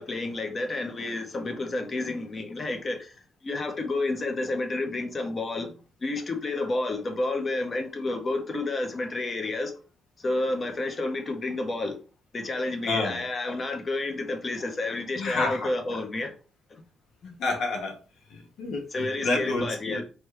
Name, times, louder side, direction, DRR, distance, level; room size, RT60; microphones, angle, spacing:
voice 1, 0.0-3.1 3.4-5.7 6.0-9.7 10.2-12.0 12.3-16.3 18.9-20.0, left 2 dB, 35° left, 1.2 m, -30 dB
voice 2, 12.9-13.2 15.2-15.7 17.2-17.9 18.3-20.0, left 3 dB, 70° left, 1.6 m, -29 dB
4.2 x 3.2 x 3.4 m
cardioid pair, 90°, 0 cm